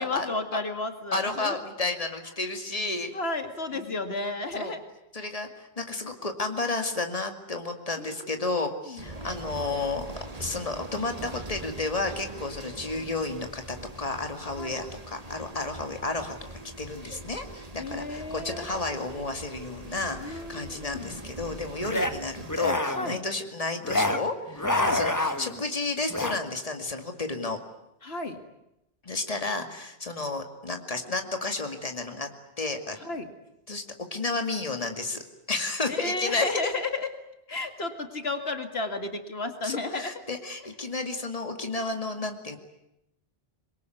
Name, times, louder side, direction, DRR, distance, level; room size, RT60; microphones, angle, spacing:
voice 1, 0.0-1.6 3.1-4.8 5.2-5.3 8.0-8.1 8.9-9.0 14.6-14.8 17.8-18.6 20.2-21.2 22.9-23.2 24.8-25.0 28.0-28.4 33.0-33.3 35.9-37.1 37.5-40.1, left 2 dB, 75° left, 7 dB, 2.4 m, -33 dB
voice 2, 1.1-3.1 3.7-3.9 4.5-4.7 5.1-10.1 10.4-27.6 29.0-32.3 32.6-33.0 33.7-33.8 34.1-35.2 35.5-36.5 39.6-42.6, left 3 dB, 35° left, 5 dB, 2.5 m, -32 dB
sound 1, 9.0-22.6, right 1 dB, 35° right, 2.2 m, -42 dB
sound 2, 21.8-22.1 22.4-23.2 23.8-24.2 24.5-25.6 26.1-26.4, left 1 dB, 20° left, 1.5 m, -27 dB
26.0 x 22.5 x 9.4 m, 0.85 s
omnidirectional pair, 1.0 m